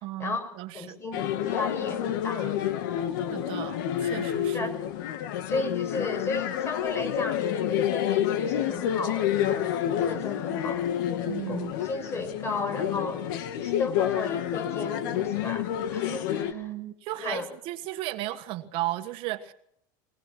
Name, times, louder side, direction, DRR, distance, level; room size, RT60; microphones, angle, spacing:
voice 1, 0.0-1.0 3.3-4.7 11.2-11.7 16.5-19.5, right 16 dB, 55° right, 9 dB, 1.5 m, -35 dB
voice 2, 0.7-2.6 4.5-4.8 5.5-11.0 11.5-13.3 13.6-16.7 17.1-17.5, left 3 dB, 25° left, 9 dB, 5.9 m, -34 dB
sound 1, 1.1-16.5, left 10 dB, 80° left, 2.3 m, -29 dB
22.5 x 19.0 x 6.0 m, 0.71 s
supercardioid pair, 130°, 11 cm